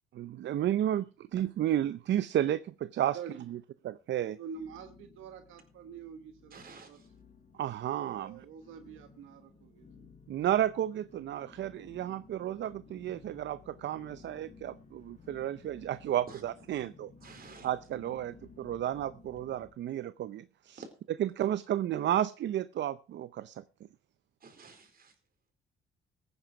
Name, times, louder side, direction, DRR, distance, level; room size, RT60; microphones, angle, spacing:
voice 1, 0.1-3.2 3.5-3.6 4.1-4.4 7.6-8.5 10.3-17.1 17.6-20.8 21.2-23.6, right 11 dB, 65° right, 15 dB, 0.6 m, -32 dB
sound 1, 1.4-2.3 2.6-3.2 3.7-3.8 4.5-19.7, left 4 dB, 35° left, 4.2 m, -57 dB
voice 2, 4.4-6.6 6.9-7.0 8.0-10.1, right 6 dB, 85° right, 8 dB, 1.2 m, -46 dB
voice 3, 6.5-7.1 16.3-16.4 17.2-17.7 20.8-20.9 24.4-25.1, right 4 dB, 50° right, 6 dB, 4.3 m, -50 dB
15.0 x 9.8 x 4.9 m, 0.35 s
cardioid pair, 90°, 20 cm